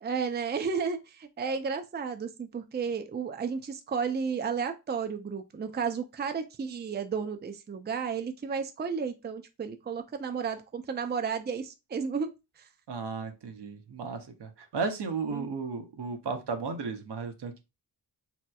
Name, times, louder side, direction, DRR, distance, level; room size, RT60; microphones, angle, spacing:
voice 1, 0.0-12.3 15.3-15.5, right 6 dB, 25° right, 0.4 m, -33 dB
voice 2, 12.9-17.6, right 4 dB, 70° right, 0.7 m, -34 dB
3.1 x 2.9 x 2.3 m
cardioid pair, 45°, 42 cm